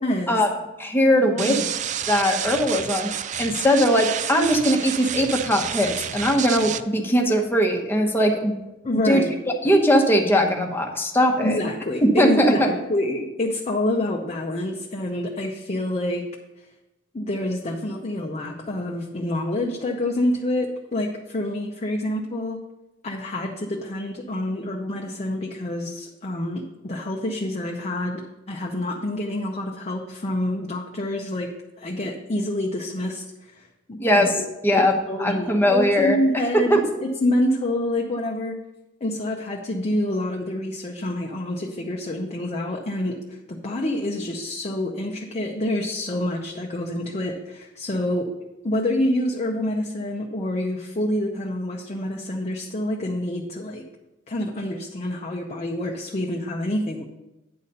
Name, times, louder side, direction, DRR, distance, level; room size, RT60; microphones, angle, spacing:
voice 1, 0.0-0.4 1.2-1.7 8.8-9.4 11.4-16.3 17.1-22.6 23.0-34.5 35.1-38.6 39.0-48.3 48.6-53.8 54.3-57.0, left 1 dB, 35° left, 1 dB, 0.7 m, -27 dB
voice 2, 0.8-1.6 2.1-3.1 3.4-8.6 9.0-9.3 9.6-11.6 12.2-12.7 34.0-34.9 35.2-36.8, equal, 10° left, 2 dB, 1.0 m, -20 dB
sound 1, 1.4-6.8, right 9 dB, 40° right, 0.3 m, -30 dB
9.5 x 4.1 x 6.6 m, 1.0 s
head